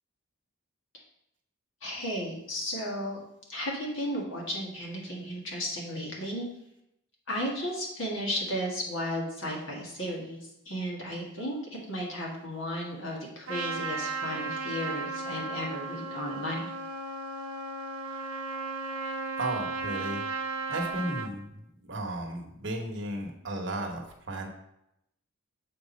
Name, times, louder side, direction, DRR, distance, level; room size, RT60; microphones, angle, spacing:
voice 1, 1.8-3.2 3.5-6.5 7.3-11.6 11.9-16.7, equal, 60° left, -2 dB, 1.8 m, -34 dB
Trumpet, 13.5-21.3, right 3 dB, 80° right, 0.8 m, -35 dB
voice 2, 19.4-20.2 20.7-24.5, right 1 dB, 55° right, 2 dB, 1.1 m, -34 dB
7.2 x 4.9 x 4.1 m, 0.80 s
head